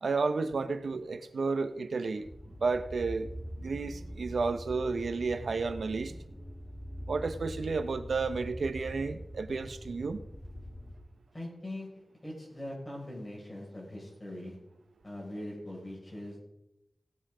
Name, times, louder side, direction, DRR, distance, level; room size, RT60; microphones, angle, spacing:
voice 1, 0.0-2.3 2.6-3.3 3.6-6.1 7.1-10.2, right 4 dB, 90° right, 10 dB, 0.9 m, -32 dB
sound 1, 2.2-11.0, equal, 5° left, 2.2 m, -43 dB
voice 2, 11.3-11.9 12.2-14.6 15.0-16.3, left 1 dB, 25° left, -2 dB, 5.8 m, -41 dB
17.5 x 7.6 x 5.0 m, 0.84 s
wide cardioid pair, 105°, 0 cm